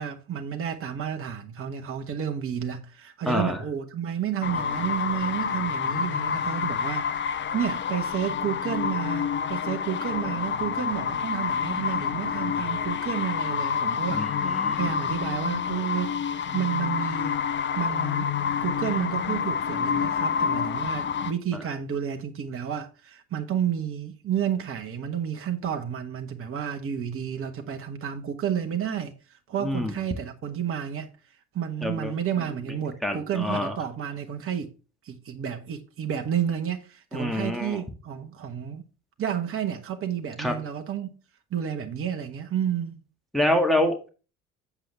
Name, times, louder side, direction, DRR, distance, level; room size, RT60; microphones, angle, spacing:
voice 1, 0.0-16.1 16.5-17.3 17.7-18.3 18.6-31.1 31.5-34.7 35.0-38.8 39.2-41.1 41.5-43.0, right 9 dB, 35° right, 1.2 m, -31 dB
voice 2, 3.3-3.6 14.1-14.8 29.6-29.9 31.8-32.1 33.0-33.7 37.1-37.8 40.4-40.6 43.3-44.1, left 1 dB, ahead, 1.8 m, -26 dB
sound 1, 4.4-21.3, left 7 dB, 30° left, 0.7 m, -28 dB
7.5 x 7.1 x 3.5 m
figure-of-eight pair, 60°, 40 cm